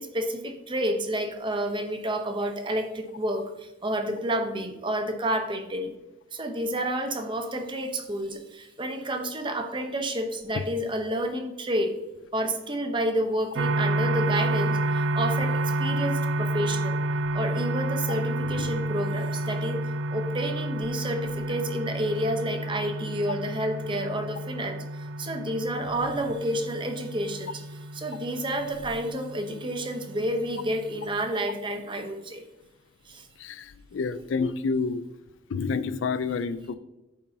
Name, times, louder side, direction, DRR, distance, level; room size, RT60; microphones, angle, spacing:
voice 1, 0.0-6.0 6.3-12.0 12.3-17.0 17.3-19.8 20.1-32.4 33.1-33.3, right 1 dB, 25° right, 6 dB, 0.8 m, -30 dB
sound 1, 13.6-31.3, right 1 dB, 75° right, 0.4 m, -30 dB
voice 2, 33.4-35.0 35.5-36.7, left 4 dB, 85° left, 14 dB, 0.4 m, -29 dB
8.4 x 5.6 x 2.7 m, 1.0 s
head